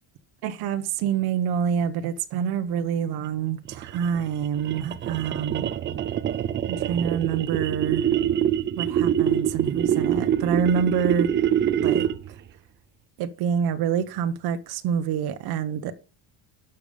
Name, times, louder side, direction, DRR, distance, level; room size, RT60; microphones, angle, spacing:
voice 1, 0.4-5.7 6.7-8.1 8.8-11.3 11.8-12.4 13.2-15.9, right 7 dB, 50° right, 1.2 m, -27 dB
sound 1, 3.6-12.3, right 10 dB, 25° right, 0.4 m, -25 dB
12.0 x 7.1 x 5.2 m
cardioid pair, 175°, 48 cm